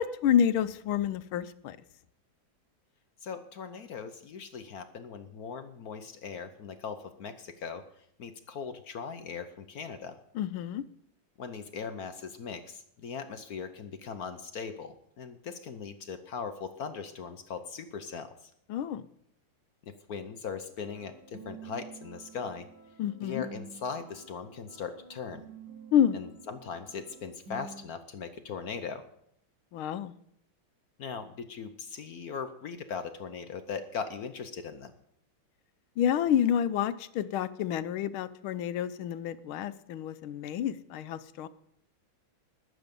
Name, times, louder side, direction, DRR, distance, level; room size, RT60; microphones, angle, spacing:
voice 1, 0.0-1.8 10.3-10.8 18.7-19.1 23.0-23.4 25.9-26.2 29.7-30.1 36.0-41.5, left 9 dB, 85° left, 14 dB, 1.6 m, -28 dB
voice 2, 3.2-7.8 8.2-10.2 11.4-18.5 19.8-22.7 23.2-25.5 26.1-29.0 31.0-34.9, left 6 dB, 60° left, 9 dB, 1.1 m, -39 dB
sound 1, 20.8-27.8, right 4 dB, 60° right, 4.6 m, -49 dB
20.0 x 8.0 x 5.2 m, 0.70 s
omnidirectional pair, 2.2 m